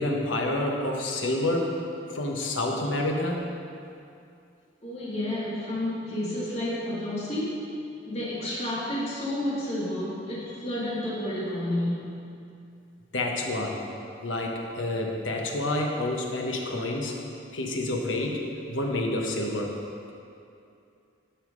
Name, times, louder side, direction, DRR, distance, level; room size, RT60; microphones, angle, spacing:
voice 1, 0.0-1.8 2.1-3.4 13.1-13.8 14.2-17.2 17.5-18.4 18.7-19.8, left 1 dB, 85° left, 1 dB, 1.2 m, -28 dB
voice 2, 4.8-7.7 8.1-12.2, left 1 dB, 35° left, -7 dB, 2.2 m, -30 dB
11.5 x 5.7 x 5.3 m, 2.5 s
head